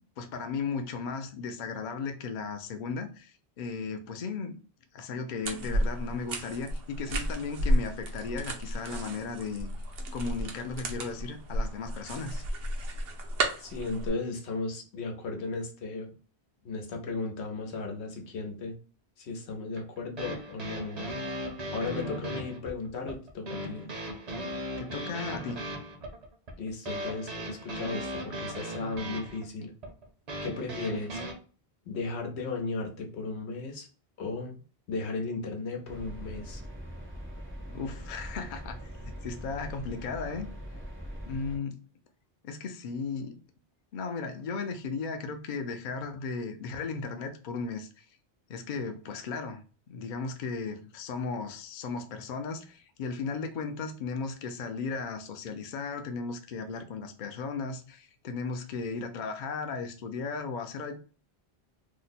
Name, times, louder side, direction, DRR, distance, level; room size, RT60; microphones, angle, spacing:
voice 1, 0.2-4.5 4.9-9.7 10.1-12.4 24.8-25.6 37.7-40.5 41.3-41.8 42.4-43.4 43.9-48.1 48.5-49.6 49.9-61.0, left 4 dB, 55° left, 0.6 m, -36 dB
sound 1, 5.4-14.1, right 1 dB, 70° right, 0.9 m, -32 dB
voice 2, 13.6-16.1 16.6-18.7 19.2-21.1 21.7-23.9 26.6-29.7 30.4-31.2 31.9-33.9 34.2-34.5 34.9-36.6, left 3 dB, 90° left, 1.0 m, -35 dB
sound 2, 19.8-31.3, equal, 45° right, 0.7 m, -37 dB
sound 3, 35.9-41.6, equal, 15° right, 0.5 m, -42 dB
2.9 x 2.0 x 4.0 m
omnidirectional pair, 1.1 m